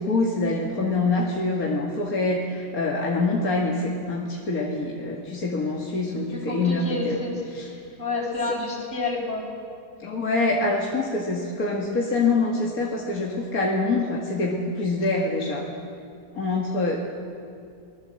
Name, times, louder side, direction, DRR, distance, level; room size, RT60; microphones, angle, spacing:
voice 1, 0.0-7.2 7.5-7.6 10.0-15.7 16.3-17.0, left 3 dB, 50° left, -3 dB, 2.4 m, -25 dB
voice 2, 6.3-7.4 8.0-9.5, left 3 dB, 35° left, -4 dB, 5.2 m, -29 dB
24.5 x 20.5 x 7.7 m, 2.4 s
omnidirectional pair, 2.0 m